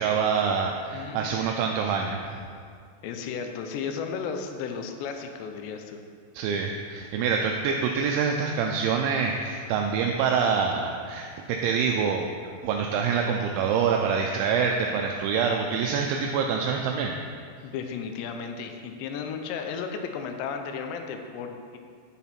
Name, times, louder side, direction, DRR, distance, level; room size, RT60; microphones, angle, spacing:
voice 1, 0.0-2.2 6.3-12.3 12.6-17.1, right 6 dB, 85° right, 2 dB, 2.7 m, -26 dB
voice 2, 0.9-1.4 3.0-6.0 17.6-21.8, left 6 dB, 80° left, 5 dB, 2.7 m, -34 dB
10.0 x 7.1 x 4.3 m, 2.2 s
omnidirectional pair, 5.7 m